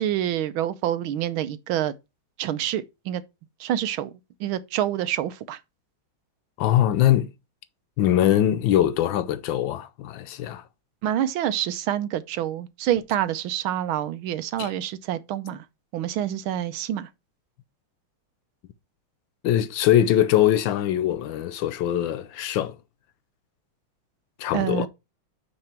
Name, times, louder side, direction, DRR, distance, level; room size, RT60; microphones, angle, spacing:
voice 1, 0.0-1.9 2.4-3.2 3.6-4.1 4.4-5.6 11.0-15.6 15.9-17.1 24.5-24.9, right 11 dB, 80° right, 1.5 m, -27 dB
voice 2, 6.6-7.3 8.0-10.6 14.6-14.7 19.4-22.8 24.4-24.9, left 11 dB, 75° left, 1.2 m, -22 dB
8.9 x 4.0 x 4.3 m
omnidirectional pair, 2.3 m